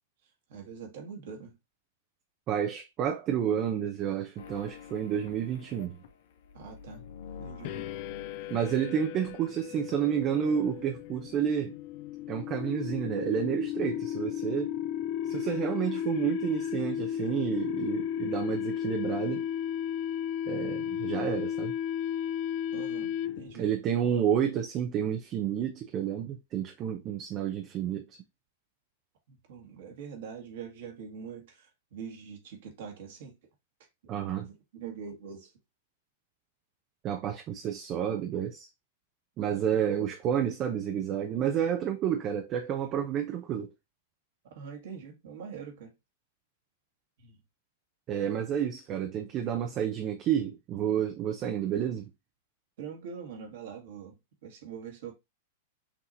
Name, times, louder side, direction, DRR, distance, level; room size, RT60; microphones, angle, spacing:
voice 1, 0.5-1.6 6.5-7.0 7.4-7.9 22.7-23.7 29.3-33.3 34.2-35.5 44.5-45.9 47.2-47.4 52.8-55.1, right 6 dB, 65° right, 1.7 m, -43 dB
voice 2, 2.5-6.0 8.5-11.7 12.3-14.7 15.2-19.5 20.5-21.7 23.6-28.0 34.1-34.5 37.0-38.7 39.4-43.7 48.1-52.1, right 9 dB, 35° right, 0.7 m, -30 dB
sound 1, 4.4-10.1 10.3-11.5, left 7 dB, 65° left, 0.7 m, -49 dB
sound 2, 7.6-23.6, left 10 dB, 50° left, 0.3 m, -34 dB
5.9 x 2.9 x 2.6 m
hypercardioid pair, 110°, 0 cm